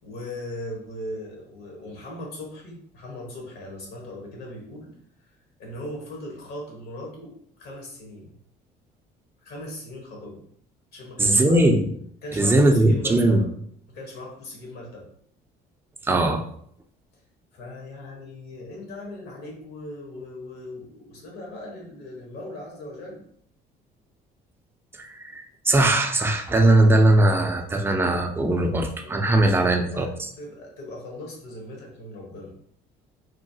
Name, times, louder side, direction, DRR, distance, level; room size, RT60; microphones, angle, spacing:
voice 1, 0.0-5.3 5.6-8.3 9.4-10.4 10.9-11.6 12.2-13.5 13.9-15.1 17.5-23.2 29.0-29.1 29.4-30.1 30.4-32.5, left 1 dB, 70° left, -1 dB, 1.2 m, -39 dB
voice 2, 11.2-11.9 12.3-13.4 16.0-16.4 25.0-30.3, right 1 dB, 15° right, 4 dB, 0.4 m, -20 dB
3.0 x 2.3 x 2.7 m, 0.66 s
cardioid pair, 110°, 17 cm